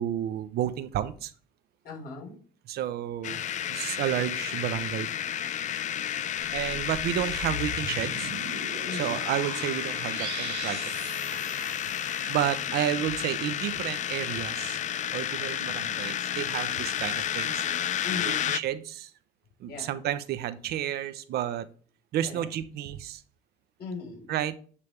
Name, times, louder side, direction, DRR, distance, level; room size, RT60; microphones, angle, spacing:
voice 1, 0.0-1.3 2.7-3.4 3.7-5.1 6.5-8.3 8.9-14.8 15.1-17.7 18.3-19.1 19.6-21.7 22.1-23.2 24.3-24.5, right 11 dB, 70° right, 13 dB, 0.8 m, -31 dB
voice 2, 1.8-2.4 8.8-9.3 18.0-18.5 19.6-20.0 22.2-22.5 23.8-24.3, left 4 dB, 65° left, -1 dB, 4.7 m, -39 dB
sound 1, 3.2-18.6, left 10 dB, 45° left, 0.4 m, -31 dB
sound 2, 6.4-12.2, right 5 dB, 85° right, 1.2 m, -40 dB
9.7 x 3.4 x 7.0 m, 0.43 s
cardioid pair, 110°, 17 cm